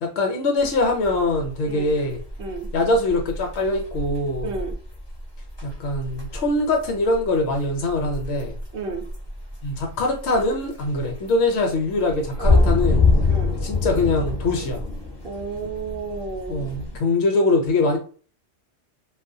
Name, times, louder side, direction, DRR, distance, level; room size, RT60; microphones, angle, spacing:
voice 1, 0.0-2.2 2.7-4.5 5.6-8.6 9.6-13.0 13.6-14.8 16.5-18.0, left 2 dB, 70° left, 1 dB, 0.8 m, -23 dB
sound 1, 0.6-17.0, left 3 dB, 35° left, 0.4 m, -26 dB
voice 2, 4.4-4.7 8.7-9.1 12.4-12.7 13.3-13.5 15.2-16.7, right 4 dB, 60° right, 3 dB, 0.7 m, -32 dB
2.3 x 2.1 x 2.6 m, 0.41 s
omnidirectional pair, 1.2 m